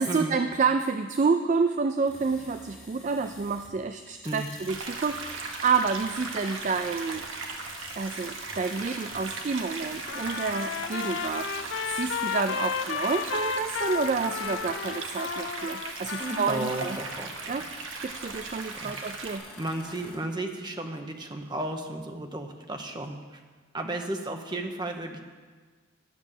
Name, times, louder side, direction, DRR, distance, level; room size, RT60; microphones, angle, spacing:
voice 1, 0.0-7.2 7.9-17.0 17.5-17.6 18.0-19.5, right 4 dB, 35° right, 8 dB, 0.3 m, -29 dB
sound 1, 2.0-3.8 4.1-20.2, left 2 dB, 5° left, 2.2 m, -48 dB
sound 2, 4.7-19.4, right 3 dB, 75° right, 1.2 m, -38 dB
Trumpet, 10.1-17.2, left 7 dB, 65° left, 0.4 m, -33 dB
voice 2, 16.2-17.4 18.8-19.1 19.6-23.4 23.7-25.2, right 1 dB, 20° right, 4 dB, 0.8 m, -34 dB
11.0 x 7.2 x 6.6 m, 1.4 s
head